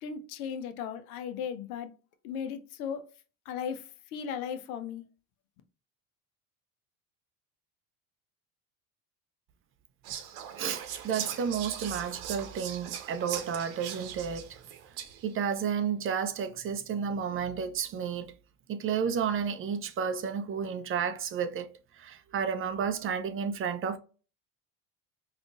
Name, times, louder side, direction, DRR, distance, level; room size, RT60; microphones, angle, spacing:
voice 1, 0.0-1.9 2.2-3.1 3.5-5.0, left 7 dB, 80° left, 0.6 m, -36 dB
Whispering, 10.0-15.4, right 9 dB, 65° right, 0.8 m, -40 dB
voice 2, 10.6-14.5 15.2-18.3 18.7-21.7 21.9-24.0, right 7 dB, 30° right, 0.4 m, -31 dB
3.6 x 2.4 x 2.3 m
hypercardioid pair, 70°, 43 cm